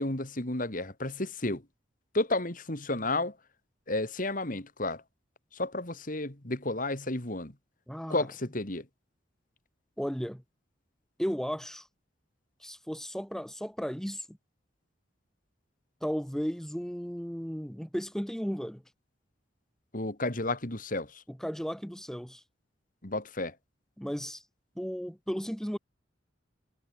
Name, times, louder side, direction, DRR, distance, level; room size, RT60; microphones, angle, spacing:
voice 1, 0.0-1.6 2.1-3.4 3.9-5.0 5.5-7.5 8.1-8.9 19.9-21.2 23.0-23.5, left 2 dB, 45° left, 2.8 m, -32 dB
voice 2, 7.9-8.3 10.0-10.4 11.2-11.9 12.6-14.4 16.0-18.8 21.3-22.4 24.0-24.4 24.7-25.8, equal, 5° left, 1.5 m, -35 dB
head